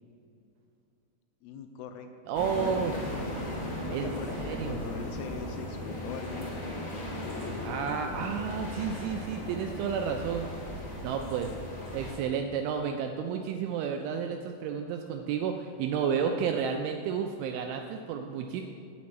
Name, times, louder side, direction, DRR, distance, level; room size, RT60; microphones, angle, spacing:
voice 1, 1.4-3.0 3.9-6.6, left 7 dB, 80° left, 6 dB, 3.0 m, -42 dB
sound 1, 2.3-12.1, left 1 dB, 25° left, 1.8 m, -37 dB
voice 2, 2.3-2.9 3.9-4.1 4.4-4.8 7.6-10.5 11.0-11.5 11.9-18.6, right 7 dB, 85° right, 4 dB, 2.7 m, -31 dB
sound 2, 3.5-6.6, left 1 dB, 60° right, 5.4 m, -49 dB
8.7 x 6.2 x 8.4 m, 2.4 s
omnidirectional pair, 5.9 m